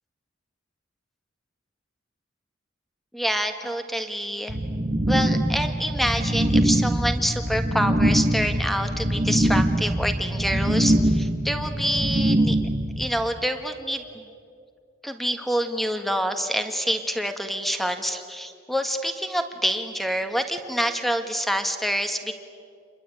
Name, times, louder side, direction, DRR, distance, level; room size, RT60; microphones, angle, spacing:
voice 1, 3.1-4.6 5.1-12.6 13.0-14.2 15.0-22.3, equal, ahead, 7 dB, 1.7 m, -27 dB
sound 1, 4.5-13.0, right 1 dB, 35° right, 1.6 m, -23 dB
28.5 x 22.0 x 9.3 m, 2.3 s
head